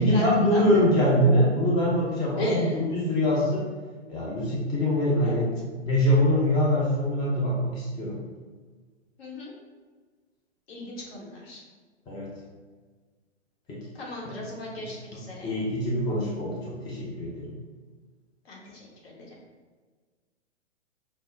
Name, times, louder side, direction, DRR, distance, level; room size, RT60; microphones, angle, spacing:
voice 1, 0.0-3.6 4.1-8.2 12.1-12.3 13.7-13.8 14.2-14.5 14.8-14.9 15.4-17.5, equal, 10° left, -5 dB, 0.5 m, -24 dB
voice 2, 2.4-2.7 5.2-5.4 9.2-9.5 10.7-11.6 13.9-15.6 18.5-19.3, left 1 dB, 60° left, -3 dB, 1.4 m, -36 dB
5.9 x 2.0 x 3.3 m, 1.4 s
hypercardioid pair, 120°, 35 cm